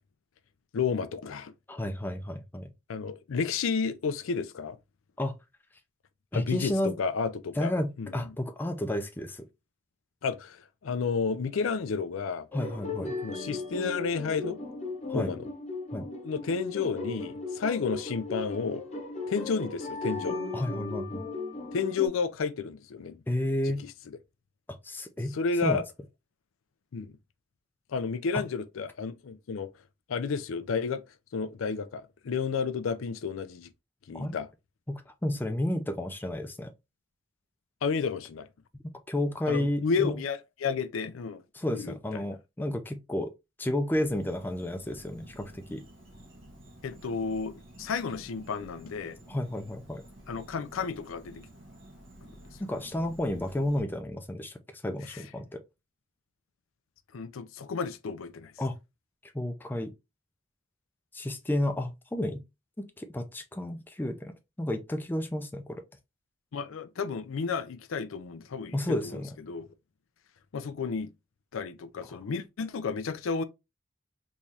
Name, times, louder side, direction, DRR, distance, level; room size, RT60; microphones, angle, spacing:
voice 1, 0.7-1.5 2.9-4.8 6.3-8.4 10.2-12.5 13.2-14.6 15.1-15.5 16.2-18.8 19.3-20.4 21.7-23.2 23.6-23.9 25.2-25.8 26.9-27.2 27.9-29.7 30.1-31.0 31.3-33.7 34.1-34.5 37.8-38.5 39.5-41.4 41.7-42.3 46.8-49.2 50.3-51.4 52.2-52.3 55.0-55.3 57.1-58.5 66.5-69.7 70.5-71.1 71.5-73.4, left 5 dB, 85° left, 0.4 m, -32 dB
voice 2, 1.7-2.7 5.2-5.3 6.3-6.9 7.6-9.4 12.5-13.2 15.1-15.3 15.9-16.1 20.5-21.3 23.3-23.8 24.8-25.4 25.6-25.8 34.1-34.3 34.9-36.7 39.1-40.2 41.5-43.3 43.6-45.8 49.3-50.0 52.6-54.5 54.8-55.6 58.6-58.8 59.3-59.9 61.1-62.4 62.8-64.3 64.6-65.6 68.7-69.3, left 1 dB, 10° left, 0.4 m, -31 dB
sound 1, 12.5-22.1, left 3 dB, 35° left, 0.8 m, -36 dB
Insect, 43.9-53.8, right 1 dB, 75° right, 1.4 m, -51 dB
3.6 x 3.1 x 2.7 m
head